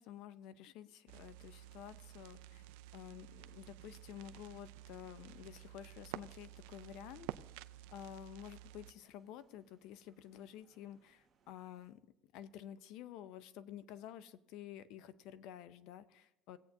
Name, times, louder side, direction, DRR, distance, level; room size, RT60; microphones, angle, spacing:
voice 1, 0.0-2.6 2.9-7.3 7.9-12.0 12.3-16.6, left 11 dB, 65° left, 15 dB, 0.6 m, -51 dB
sound 1, 1.1-8.9, right 15 dB, 80° right, 0.3 m, -51 dB
sound 2, 3.7-11.9, right 5 dB, 30° right, 1.5 m, -75 dB
18.0 x 8.3 x 2.6 m, 0.84 s
cardioid pair, 135°, 0 cm